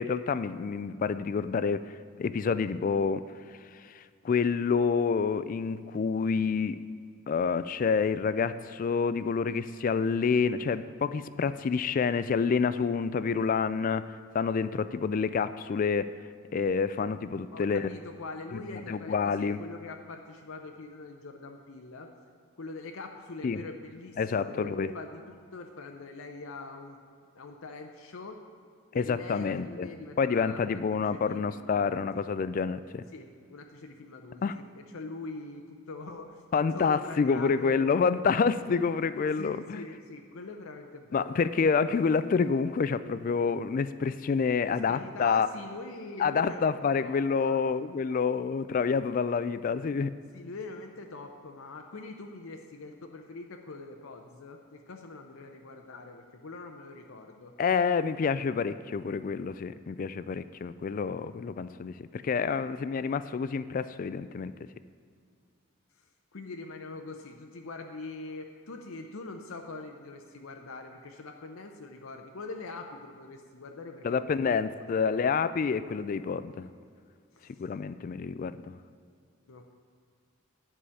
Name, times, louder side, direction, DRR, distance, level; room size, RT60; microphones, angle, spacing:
voice 1, 0.0-1.8 2.2-3.2 3.9-6.8 7.3-14.0 14.3-16.1 16.5-17.9 18.5-19.6 23.4-23.6 24.2-24.9 28.9-29.9 30.2-33.0 34.4-34.6 36.5-39.8 41.1-45.5 46.2-50.1 57.6-64.5 74.0-76.7 77.6-78.7, left 5 dB, 40° left, 14 dB, 0.3 m, -28 dB
voice 2, 17.5-22.1 22.6-27.0 27.3-28.4 28.9-30.7 30.9-32.3 33.1-36.4 36.7-38.1 39.4-41.5 44.7-47.6 50.3-57.5 66.3-74.6 77.3-77.6 79.5-79.7, left 3 dB, 90° left, 3 dB, 0.7 m, -43 dB
10.0 x 4.9 x 7.0 m, 2.2 s
head